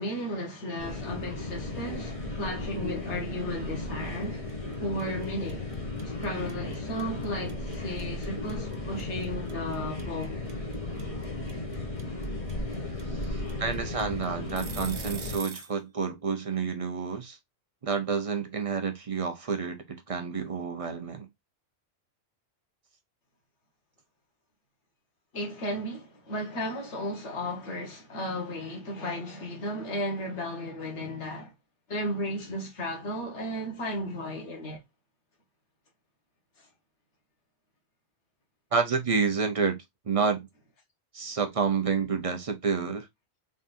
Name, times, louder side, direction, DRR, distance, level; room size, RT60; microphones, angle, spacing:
voice 1, 0.0-4.4 4.8-5.7 6.2-10.4 25.3-31.5 31.9-34.8, equal, 85° left, 1.6 m, -34 dB
sound 1, 0.8-15.4, left 2 dB, 30° left, 1.4 m, -35 dB
sound 2, 4.5-4.7 5.0-15.8, right 6 dB, 65° right, 1.0 m, -43 dB
voice 2, 13.2-17.4 17.8-21.3 38.7-40.5 41.1-43.1, right 5 dB, 40° right, 0.6 m, -29 dB
3.9 x 3.5 x 2.5 m
omnidirectional pair, 1.1 m